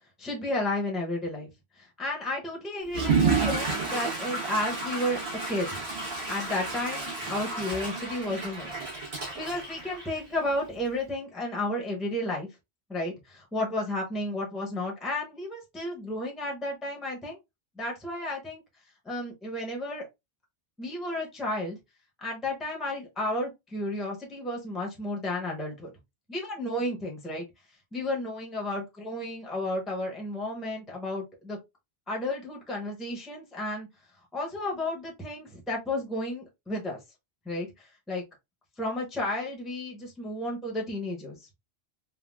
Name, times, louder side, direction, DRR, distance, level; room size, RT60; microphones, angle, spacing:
voice 1, 0.2-1.5 1.8-5.2 5.5-5.8 6.3-8.8 9.3-12.5 12.9-17.4 17.8-18.6 19.0-20.1 20.8-21.8 22.2-25.9 26.3-27.4 27.9-31.6 32.1-33.9 34.3-37.0 37.5-38.2 38.8-41.5, left 1 dB, ahead, 0.7 m, -32 dB
Water / Toilet flush, 2.8-10.6, right 4 dB, 85° right, 1.3 m, -30 dB
3.5 x 2.3 x 2.2 m
omnidirectional pair, 1.0 m